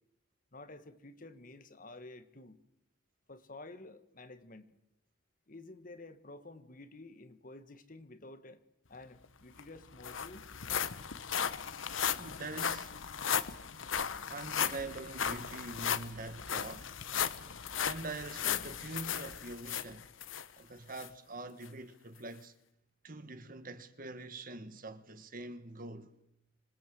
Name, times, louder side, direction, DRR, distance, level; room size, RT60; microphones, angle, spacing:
voice 1, 0.5-2.6 3.3-4.7 5.5-8.6 8.9-10.5, left 2 dB, 45° left, 1.6 m, -51 dB
sound 1, 9.2-9.3 9.6-20.5 20.9-21.1 21.6-21.7, left 8 dB, 80° left, 1.1 m, -36 dB
voice 2, 12.2-13.1 14.3-17.0 17.8-20.1 20.6-22.5 23.0-26.1, right 2 dB, 45° right, 1.5 m, -44 dB
26.0 x 19.5 x 7.8 m
head